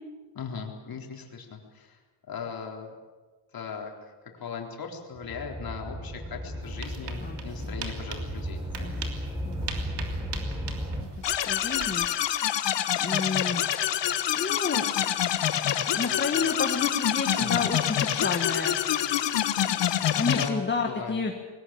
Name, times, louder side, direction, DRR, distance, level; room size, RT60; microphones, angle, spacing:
voice 1, 0.3-2.0 2.3-2.9 3.5-4.1 4.4-8.7 17.3-17.7 20.3-21.2, left 6 dB, 50° left, 1 dB, 3.9 m, -38 dB
sound 1, 5.1-11.0, equal, 5° right, 3.8 m, -35 dB
sound 2, 6.6-12.1, right 6 dB, 65° right, 3.2 m, -41 dB
voice 2, 7.2-7.7 8.8-9.1 9.4-10.1 10.6-12.1 13.0-13.6 14.3-14.8 15.9-18.8 20.1-21.3, left 4 dB, 25° left, 3 dB, 1.8 m, -31 dB
sound 3, 11.2-20.5, left 11 dB, 70° left, 1.3 m, -26 dB
21.0 x 19.0 x 8.9 m, 1.3 s
wide cardioid pair, 150°, 44 cm